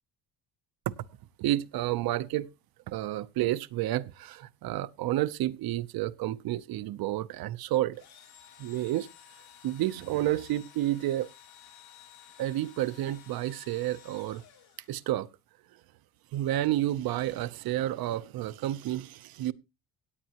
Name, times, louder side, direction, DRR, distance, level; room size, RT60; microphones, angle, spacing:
voice 1, 1.4-2.5 2.9-8.0 8.6-9.1 9.6-11.3 12.4-14.4 14.9-15.3 16.3-19.5, right 14 dB, 65° right, 0.7 m, -30 dB
Engine / Drill, 7.9-15.3, left 9 dB, 65° left, 4.3 m, -54 dB
17.0 x 8.9 x 2.9 m
cardioid pair, 175°, 39 cm